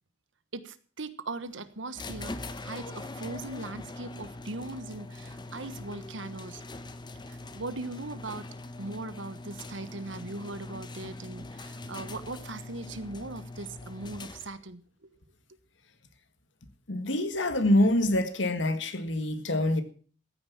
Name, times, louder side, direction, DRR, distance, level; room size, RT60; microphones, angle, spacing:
voice 1, 0.5-6.6 7.3-8.5 8.8-15.1, right 2 dB, 90° right, 1.3 m, -39 dB
sound 1, 2.0-14.7, left 2 dB, 25° left, 1.0 m, -42 dB
voice 2, 16.9-19.8, left 1 dB, 80° left, 1.8 m, -25 dB
14.5 x 9.4 x 7.1 m
head